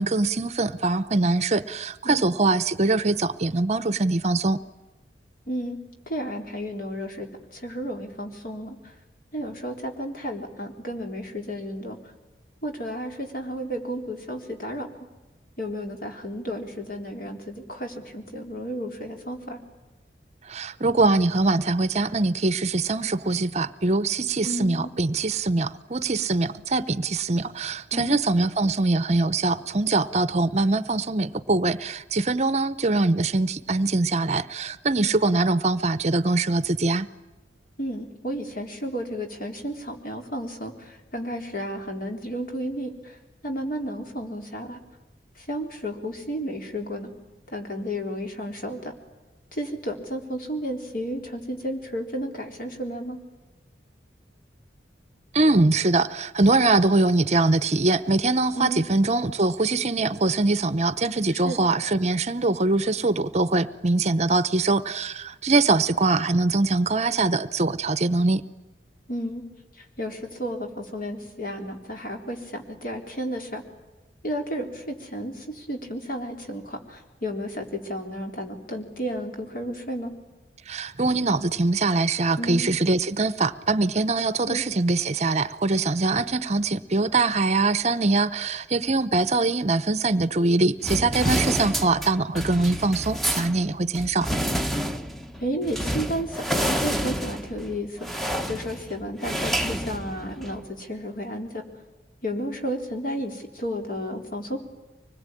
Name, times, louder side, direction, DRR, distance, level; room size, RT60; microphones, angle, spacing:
voice 1, 0.0-4.6 20.4-37.1 55.3-68.4 80.7-94.3, right 3 dB, 40° right, 15 dB, 0.8 m, -23 dB
voice 2, 5.5-5.8 6.1-8.8 9.3-12.0 12.6-14.9 15.6-19.6 24.4-24.9 27.9-28.2 37.8-43.2 43.4-44.8 45.4-47.1 47.5-48.9 49.5-53.2 58.6-58.8 61.3-61.6 69.1-69.4 70.0-73.6 74.2-80.1 82.4-82.7 84.5-84.6 95.4-101.6 102.2-104.6, equal, 50° left, 4 dB, 3.9 m, -32 dB
sound 1, 90.8-100.6, equal, ahead, 1.0 m, -29 dB
25.0 x 21.0 x 9.9 m, 1.1 s
head